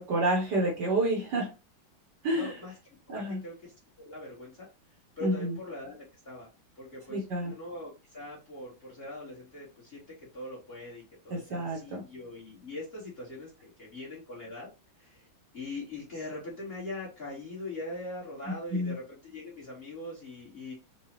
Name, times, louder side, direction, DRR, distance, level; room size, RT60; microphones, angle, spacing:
voice 1, 0.0-1.5 2.2-2.6 3.1-3.4 5.2-5.6 7.1-7.5 11.3-12.0 18.7-19.0, right 1 dB, 65° right, -1 dB, 1.4 m, -29 dB
voice 2, 2.3-2.7 3.1-4.7 5.2-6.5 6.8-14.7 15.0-15.2 15.5-20.7, left 2 dB, 35° left, -5 dB, 1.3 m, -42 dB
4.8 x 2.3 x 2.9 m, 0.29 s
omnidirectional pair, 2.2 m